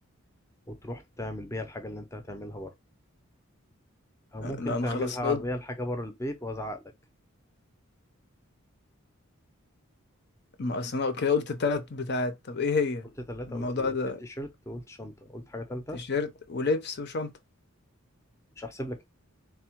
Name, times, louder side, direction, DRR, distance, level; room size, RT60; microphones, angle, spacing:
voice 1, 0.7-2.7 4.3-6.8 13.3-16.0 18.6-19.0, left 1 dB, 15° left, 0.5 m, -36 dB
voice 2, 4.4-5.4 10.6-13.1 13.5-14.2 15.9-17.3, left 4 dB, 55° left, 0.7 m, -29 dB
3.5 x 2.2 x 4.4 m
head